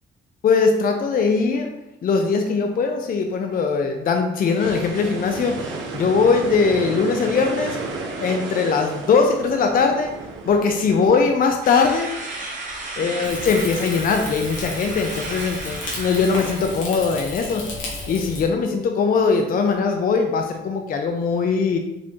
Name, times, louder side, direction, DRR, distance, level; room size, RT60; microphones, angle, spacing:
voice 1, 0.4-1.7 2.0-5.6 5.9-7.8 8.2-10.1 10.5-12.1 13.0-17.6 18.1-21.8, left 5 dB, 45° left, 4 dB, 0.5 m, -20 dB
sound 1, 4.4-11.4, right 3 dB, 70° right, 0.9 m, -33 dB
sound 2, 11.6-16.9, right 2 dB, 40° right, 1.3 m, -34 dB
Rain / Fire, 13.2-18.4, left 2 dB, 90° left, 1.4 m, -33 dB
5.0 x 2.9 x 3.6 m, 0.90 s
cardioid pair, 90°, 20 cm